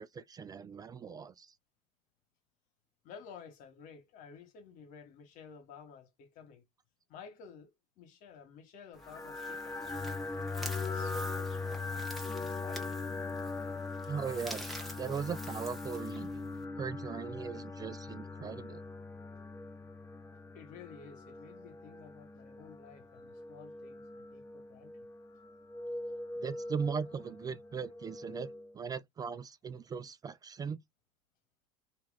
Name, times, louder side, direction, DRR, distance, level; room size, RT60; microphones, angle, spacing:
voice 1, 0.0-1.5 14.1-16.3 16.8-18.8 26.4-30.8, right 6 dB, 25° right, 0.4 m, -39 dB
voice 2, 3.0-6.6 7.1-7.7 8.0-9.9 10.6-11.6 12.3-12.9 20.5-24.9, left 6 dB, 60° left, 1.7 m, -53 dB
sound 1, 8.9-16.6, equal, ahead, 1.3 m, -48 dB
sound 2, 9.0-28.7, left 3 dB, 15° left, 1.0 m, -41 dB
2.9 x 2.9 x 3.8 m
supercardioid pair, 100°, 15 cm